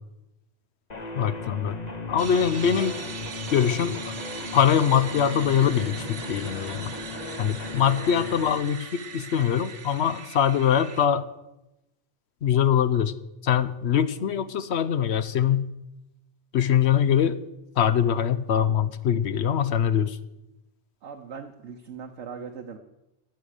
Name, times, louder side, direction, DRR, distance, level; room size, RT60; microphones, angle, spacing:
sound 1, 0.9-8.5, left 3 dB, 35° left, 1.3 m, -36 dB
voice 1, 1.2-1.8 2.1-2.9 3.5-4.0 4.5-6.9 7.4-11.3 12.4-13.1 13.4-15.7 16.5-17.4 17.8-20.2, left 8 dB, 70° left, 13 dB, 0.9 m, -23 dB
sound 2, 2.2-11.1, right 6 dB, 55° right, 1.1 m, -40 dB
voice 2, 21.0-22.8, right 6 dB, 75° right, 3 dB, 1.2 m, -40 dB
14.0 x 8.7 x 6.5 m, 0.94 s
omnidirectional pair, 1.2 m